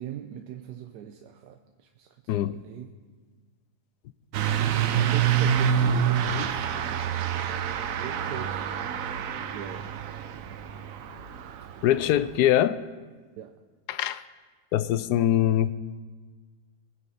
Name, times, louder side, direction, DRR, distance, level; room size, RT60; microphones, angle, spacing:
voice 1, 0.0-2.9 4.6-7.2 7.9-8.7 9.5-9.9 13.4-13.5, right 10 dB, 85° right, 5 dB, 1.3 m, -39 dB
Truck / Accelerating revving vroom, 4.3-12.3, right 8 dB, 65° right, 1.0 m, -27 dB
voice 2, 11.8-12.8 13.9-14.2 14.7-15.7, left 12 dB, 80° left, 14 dB, 1.1 m, -23 dB
22.0 x 9.8 x 4.2 m, 1.4 s
omnidirectional pair, 1.8 m